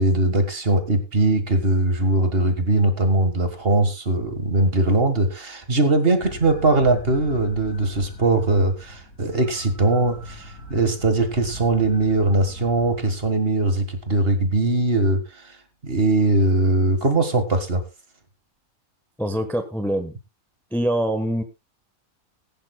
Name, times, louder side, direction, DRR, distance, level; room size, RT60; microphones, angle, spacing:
voice 1, 0.0-15.6 15.8-17.8, right 2 dB, 40° right, 7 dB, 1.8 m, -21 dB
sound 1, 6.2-13.3, equal, 75° left, 3.3 m, -40 dB
voice 2, 19.2-20.1 20.7-21.4, right 1 dB, ahead, 8 dB, 1.1 m, -24 dB
19.5 x 11.0 x 2.3 m, 0.25 s
omnidirectional pair, 1.6 m